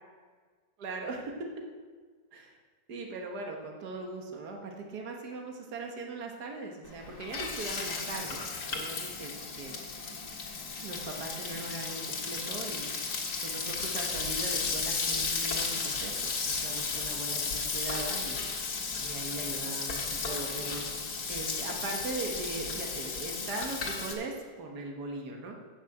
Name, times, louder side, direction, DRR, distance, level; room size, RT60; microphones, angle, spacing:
voice 1, 0.8-1.5 2.3-2.6 2.9-8.4 8.7-9.3 9.6-9.7 10.8-18.4 19.0-20.8 21.3-25.6, right 3 dB, 75° right, 1 dB, 1.8 m, -39 dB
Frying (food), 6.8-24.1, left 4 dB, 90° left, 2.3 m, -34 dB
8.6 x 6.7 x 7.8 m, 1.5 s
omnidirectional pair, 1.7 m